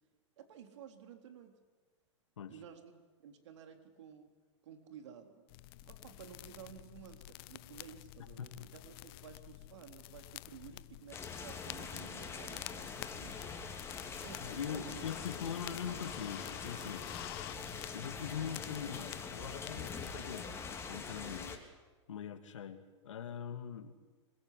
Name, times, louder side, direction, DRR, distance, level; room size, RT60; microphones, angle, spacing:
voice 1, 0.4-1.6 2.5-2.9 3.2-4.3 4.6-5.5 5.8-13.4 14.2-15.1 21.4-21.6, right 8 dB, 70° right, 6 dB, 3.6 m, -53 dB
sound 1, 5.5-20.1, left 19 dB, 50° left, 0.7 m, -50 dB
sound 2, 11.1-21.6, left 5 dB, 15° left, 3.5 m, -44 dB
voice 2, 14.5-17.1 17.9-21.5 22.1-23.9, left 8 dB, 80° left, 6 dB, 2.7 m, -42 dB
26.0 x 21.5 x 8.5 m, 1.3 s
hypercardioid pair, 120°, 16 cm